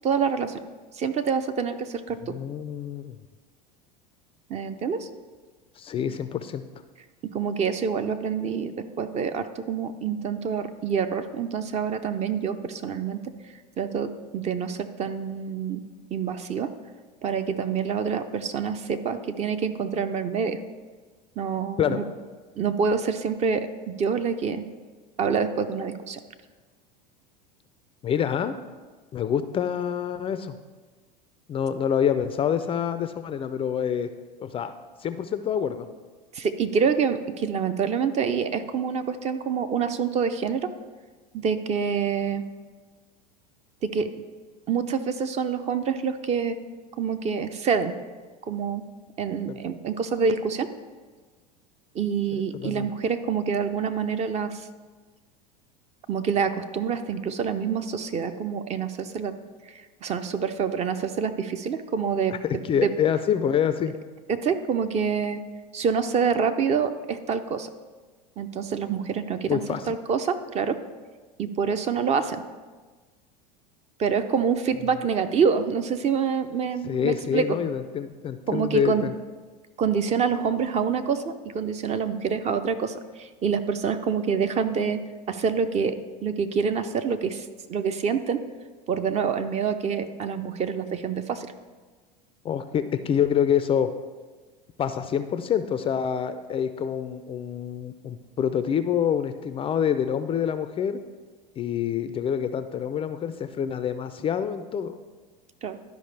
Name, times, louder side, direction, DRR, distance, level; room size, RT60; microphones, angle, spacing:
voice 1, 0.0-0.6 0.9-2.3 4.5-5.1 7.2-8.7 9.0-13.2 13.8-15.8 16.1-16.7 17.2-20.6 21.4-22.0 22.6-24.6 25.2-26.2 36.3-40.7 41.3-42.4 43.8-44.1 44.7-46.6 47.0-47.9 48.5-48.8 49.2-50.7 51.9-54.7 56.1-59.3 60.0-62.4 62.8-62.9 64.3-65.4 65.7-67.7 68.4-70.8 71.4-72.4 74.0-77.6 78.5-79.1 79.8-85.0 85.3-88.4 88.9-91.5 105.6-105.8, right 6 dB, 30° right, 10 dB, 0.5 m, -26 dB
voice 2, 2.3-3.2 5.8-6.6 21.8-22.0 28.0-28.6 29.1-30.5 31.5-34.1 34.4-34.7 35.0-35.9 49.5-49.6 52.6-52.9 62.3-62.4 62.6-63.9 69.5-69.9 76.8-79.1 92.4-93.9 94.8-101.0 101.6-105.0, left 8 dB, 25° left, 11 dB, 0.4 m, -26 dB
12.0 x 5.0 x 3.3 m, 1.4 s
hypercardioid pair, 95°, 21 cm